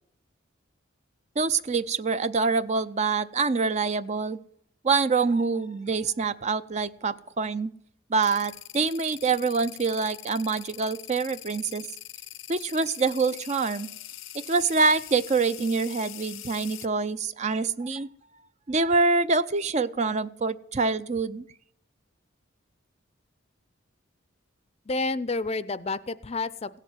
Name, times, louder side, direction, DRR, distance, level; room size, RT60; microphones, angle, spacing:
voice 1, 1.4-4.4 4.8-7.7 8.1-11.9 12.5-13.9 14.3-18.1 18.7-21.4, right 4 dB, 35° right, 14 dB, 0.5 m, -25 dB
sound 1, 8.2-16.9, left 15 dB, 75° left, 0.6 m, -42 dB
voice 2, 24.9-26.8, left 3 dB, 30° left, 17 dB, 0.5 m, -30 dB
16.5 x 7.5 x 9.6 m, 0.67 s
head